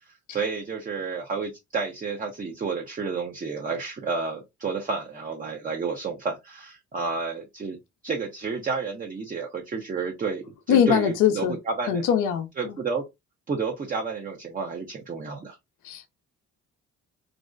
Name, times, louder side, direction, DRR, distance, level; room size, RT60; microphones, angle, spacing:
voice 1, 0.3-7.8 8.0-12.0 12.6-13.0 13.5-15.6, right 4 dB, 30° right, 0.6 m, -30 dB
voice 2, 10.7-11.5 11.9-12.5 15.8-16.1, left 9 dB, 90° left, 0.6 m, -21 dB
2.5 x 2.1 x 2.4 m
cardioid pair, 90°, 30 cm